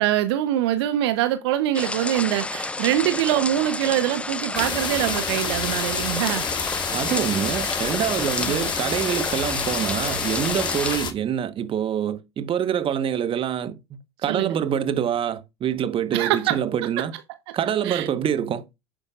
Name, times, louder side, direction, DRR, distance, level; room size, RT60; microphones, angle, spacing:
voice 1, 0.0-6.5 8.4-8.7 14.3-14.6 16.1-16.6 17.8-18.1, right 13 dB, 65° right, 0.9 m, -24 dB
sound 1, 1.7-11.0, left 2 dB, 10° left, 0.5 m, -30 dB
sound 2, 4.5-11.1, left 6 dB, 35° left, 1.7 m, -29 dB
voice 2, 6.9-17.1 17.5-18.6, right 9 dB, 40° right, 1.2 m, -26 dB
11.0 x 8.8 x 2.5 m
hypercardioid pair, 70°, 14 cm